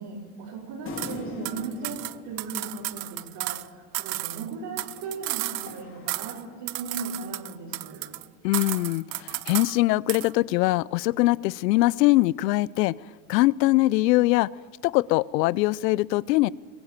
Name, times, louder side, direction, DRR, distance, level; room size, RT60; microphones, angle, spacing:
voice 1, 0.0-8.1, right 4 dB, 50° right, -3 dB, 5.0 m, -37 dB
sound 1, 0.9-3.5 5.0-7.1, left 4 dB, 25° left, 2.5 m, -42 dB
sound 2, 1.0-1.2 1.4-3.7 3.9-5.8 6.1-6.4 6.7-8.2 8.5-9.8 10.1-10.3, right 20 dB, 75° right, 0.8 m, -33 dB
voice 2, 8.4-13.0 13.3-14.5 14.8-16.5, left 19 dB, 75° left, 23 dB, 0.6 m, -22 dB
23.0 x 17.0 x 7.4 m, 1.5 s
supercardioid pair, 120°, 50 cm